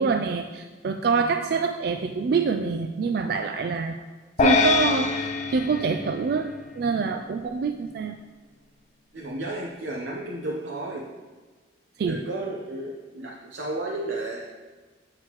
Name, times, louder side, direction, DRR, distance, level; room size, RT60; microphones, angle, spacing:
voice 1, 0.0-3.9 4.4-8.2 12.0-12.2, right 4 dB, 55° right, 7 dB, 0.3 m, -26 dB
sound 1, 4.4-6.9, left 3 dB, 40° left, 0.5 m, -24 dB
voice 2, 9.1-11.1 12.0-14.5, right 2 dB, 75° right, -1 dB, 0.7 m, -33 dB
7.7 x 7.5 x 3.0 m, 1.3 s
head